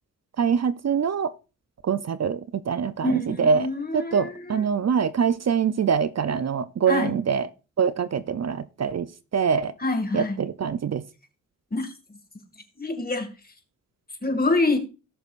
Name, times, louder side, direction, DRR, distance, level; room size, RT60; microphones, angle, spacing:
voice 1, 0.4-1.3 1.8-2.4 2.7-3.7 3.9-7.5 7.8-9.7 10.1-11.0, right 6 dB, 50° right, 0.6 m, -24 dB
voice 2, 3.0-4.6 6.9-7.2 9.8-10.4 11.7-11.9 12.8-13.3 14.2-14.8, left 2 dB, 30° left, 2.2 m, -26 dB
18.0 x 6.3 x 2.5 m
cardioid pair, 70°, 33 cm